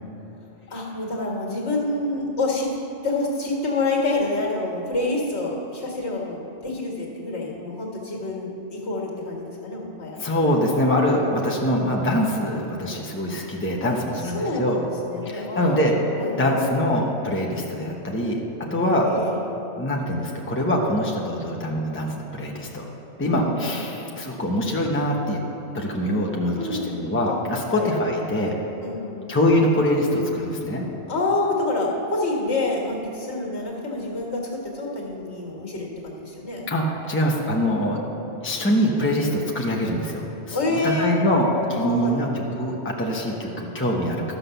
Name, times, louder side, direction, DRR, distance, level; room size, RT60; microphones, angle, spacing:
voice 1, 0.7-2.8 3.0-10.2 14.2-15.9 16.2-16.6 18.8-19.3 23.2-23.7 26.5-26.9 27.2-27.4 27.7-27.9 28.8-29.3 31.1-36.7 40.5-41.1 41.8-42.3, left 2 dB, 70° left, -2 dB, 2.1 m, -27 dB
voice 2, 10.2-14.8 15.2-15.9 16.4-18.4 18.7-19.3 19.8-22.8 23.2-25.4 25.7-28.5 29.3-30.9 36.7-38.0 38.4-42.3 42.6-44.4, left 1 dB, 10° left, -2 dB, 1.0 m, -24 dB
13.0 x 5.9 x 6.9 m, 3.0 s
omnidirectional pair, 1.2 m